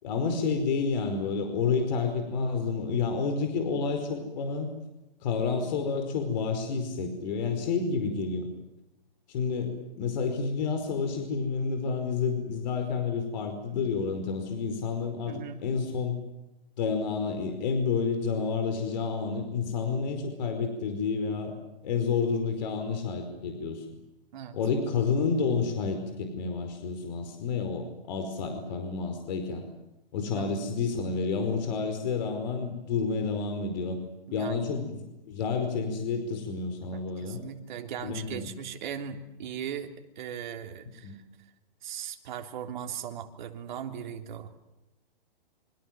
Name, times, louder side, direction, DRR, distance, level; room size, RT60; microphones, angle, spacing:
voice 1, 0.0-4.7 5.2-8.5 9.3-16.2 16.8-21.5 21.8-23.8 24.5-29.6 30.1-34.0 34.3-35.0 35.2-37.4 38.0-38.5 41.0-41.2, left 5 dB, 50° left, 6 dB, 4.9 m, -29 dB
voice 2, 15.3-15.6 24.3-24.6 30.3-30.6 34.3-34.6 37.2-41.2 41.8-44.5, right 8 dB, 50° right, 5 dB, 3.5 m, -38 dB
27.5 x 25.5 x 7.7 m, 0.95 s
hypercardioid pair, 155°, 29 cm